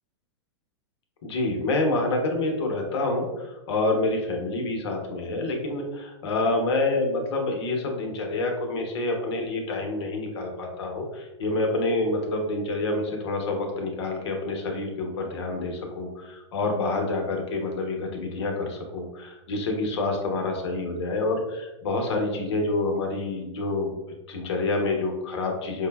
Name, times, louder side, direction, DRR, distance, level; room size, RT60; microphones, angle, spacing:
voice 1, 1.2-24.0 24.3-25.9, left 2 dB, 70° left, 2 dB, 0.8 m, -27 dB
4.9 x 2.0 x 2.2 m, 1.1 s
hypercardioid pair, 125°, 15 cm